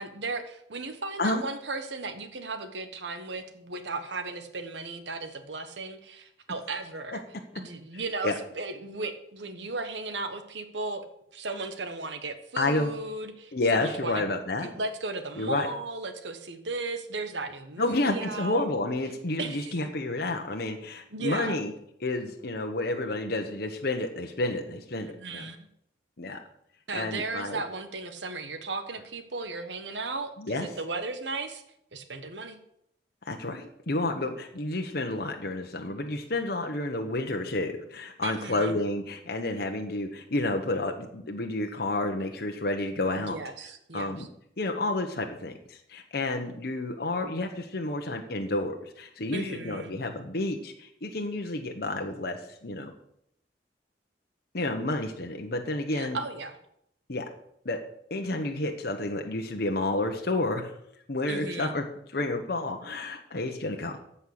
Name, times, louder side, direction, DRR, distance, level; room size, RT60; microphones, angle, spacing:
voice 1, 0.0-7.2 7.5-11.1 11.3-14.2 14.6-18.7 19.4-19.8 21.1-21.6 25.0-25.7 26.9-31.6 31.9-32.6 38.2-38.7 43.2-44.3 49.3-49.9 55.9-56.6 61.3-61.7, right 3 dB, 85° right, 8 dB, 1.3 m, -36 dB
voice 2, 12.6-12.9 13.5-14.7 15.4-15.7 17.8-21.7 22.0-25.5 26.2-26.4 26.9-27.6 30.4-30.7 33.3-43.4 43.9-44.3 44.6-52.9 54.5-56.2 57.1-57.3 57.6-57.8 58.1-60.7 61.1-64.0, left 2 dB, 60° left, 4 dB, 1.1 m, -30 dB
14.5 x 5.7 x 6.6 m, 0.74 s
head